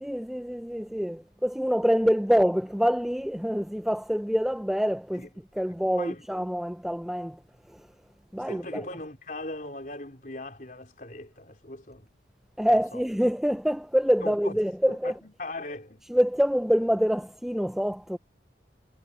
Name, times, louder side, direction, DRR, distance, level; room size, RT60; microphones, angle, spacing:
voice 1, 0.0-5.3 5.5-7.4 7.7-7.9 8.3-8.8 12.6-15.1 16.1-18.2, equal, ahead, 0.4 m, -26 dB
voice 2, 5.7-6.2 8.5-12.1 12.7-13.0 14.2-14.6 14.9-16.0, left 2 dB, 50° left, 4.3 m, -39 dB
head